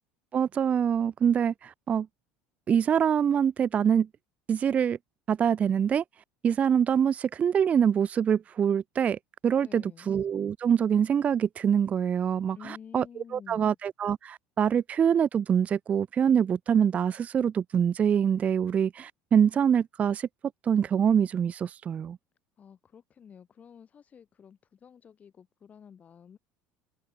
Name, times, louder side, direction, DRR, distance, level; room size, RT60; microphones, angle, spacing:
voice 1, 0.3-2.1 2.7-4.1 4.5-5.0 5.3-6.0 6.4-13.0 13.3-20.3 20.6-22.2, right 8 dB, 35° right, 0.3 m, -25 dB
voice 2, 9.5-10.1 12.6-13.8 22.6-26.4, left 7 dB, 35° left, 4.3 m, -50 dB
open air
supercardioid pair, 95°, 4 cm